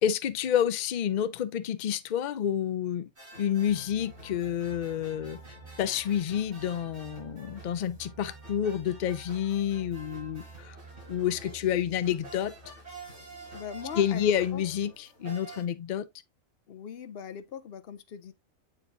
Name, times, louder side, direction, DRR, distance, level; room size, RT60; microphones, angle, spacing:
voice 1, 0.0-3.1 3.4-5.4 5.8-10.8 11.1-12.5 14.0-16.1, left 9 dB, 85° left, 0.4 m, -29 dB
sound 1, 3.2-15.6, right 2 dB, 50° right, 4.4 m, -49 dB
sound 2, 3.7-15.0, right 3 dB, 20° right, 1.3 m, -51 dB
voice 2, 13.5-14.6 16.7-18.3, left 8 dB, 55° left, 0.7 m, -40 dB
8.7 x 4.6 x 2.6 m
omnidirectional pair, 1.4 m